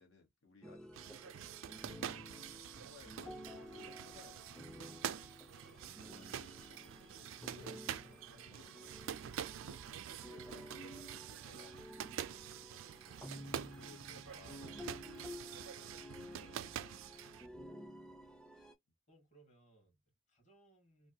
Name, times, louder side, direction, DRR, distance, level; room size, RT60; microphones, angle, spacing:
voice 1, 0.0-1.6 2.7-4.6 5.7-5.8 6.1-8.9 9.5-10.7 11.1-13.1 13.5-17.3, left 4 dB, 75° left, 1.1 m, -62 dB
sound 1, 0.6-18.7, equal, 5° left, 0.4 m, -52 dB
sound 2, 0.9-17.5, right 9 dB, 75° right, 0.3 m, -47 dB
voice 2, 2.3-2.8 5.5-6.0 18.1-18.4 19.1-21.1, right 2 dB, 35° left, 1.6 m, -68 dB
3.2 x 2.2 x 2.6 m
head